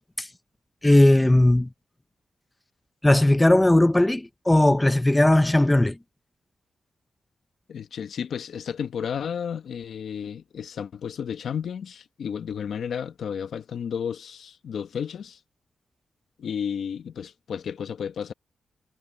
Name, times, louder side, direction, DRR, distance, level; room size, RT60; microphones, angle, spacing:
voice 1, 0.8-1.7 3.0-6.0, left 1 dB, 10° left, 0.7 m, -18 dB
voice 2, 7.7-15.4 16.4-18.3, left 7 dB, 70° left, 1.0 m, -32 dB
wide cardioid pair, 120°, 0 cm